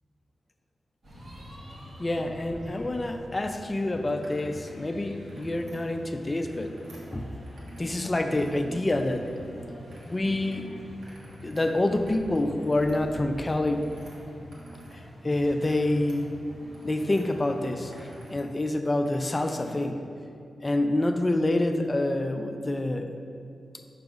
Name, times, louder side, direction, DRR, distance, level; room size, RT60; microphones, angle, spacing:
sound 1, 1.0-18.4, equal, 60° right, 1.5 m, -45 dB
voice 1, 2.0-6.8 7.1-7.3 7.8-9.3 10.0-10.7 11.4-13.9 15.2-16.4 16.8-17.9 18.3-20.0 20.6-23.1, left 1 dB, 25° left, 6 dB, 0.3 m, -27 dB
sound 2, 4.2-4.8 5.1-5.8 6.3-8.0 8.3-9.5 9.9-10.6 10.9-15.0 15.3-17.2 17.7-18.4 18.7-19.9, right 1 dB, 75° right, 1.3 m, -54 dB
5.8 x 3.6 x 5.1 m, 2.5 s
wide cardioid pair, 115°, 0 cm